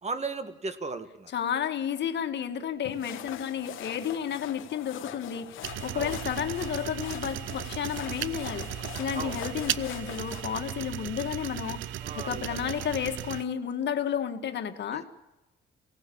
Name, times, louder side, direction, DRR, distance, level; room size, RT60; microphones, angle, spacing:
voice 1, 0.0-1.3 5.9-6.2 9.1-9.4 12.0-12.7 14.9-15.0, right 3 dB, 35° right, 10 dB, 1.9 m, -36 dB
voice 2, 1.3-15.0, left 8 dB, 60° left, 7 dB, 1.9 m, -32 dB
sound 1, 2.9-10.5, left 13 dB, 85° left, 1.0 m, -43 dB
sound 2, 5.6-13.4, right 12 dB, 80° right, 0.7 m, -36 dB
23.5 x 17.5 x 8.7 m, 1.0 s
cardioid pair, 90°, 20 cm